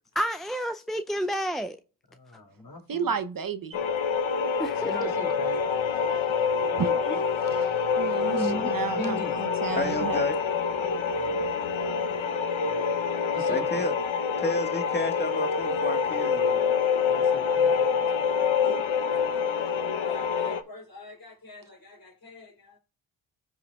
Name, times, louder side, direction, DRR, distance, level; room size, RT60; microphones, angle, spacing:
voice 1, 0.2-1.8 4.6-5.1 8.3-8.7, equal, ahead, 0.4 m, -30 dB
voice 2, 2.1-3.1 4.7-6.2 6.6-8.4 9.0-9.4 11.1-13.0 13.3-14.0 17.1-18.3 18.6-18.9 19.1-19.3 20.0-22.8, left 2 dB, 50° left, 3.5 m, -43 dB
voice 3, 2.9-3.8 6.8-6.9 7.5-10.2, right 7 dB, 45° right, 0.8 m, -32 dB
sound 1, 3.7-20.6, left 6 dB, 80° left, 0.9 m, -26 dB
voice 4, 6.7-7.2 9.8-10.4 13.5-13.9 14.4-16.7, left 2 dB, 20° left, 1.6 m, -31 dB
15.0 x 5.7 x 2.3 m
cardioid pair, 55°, 47 cm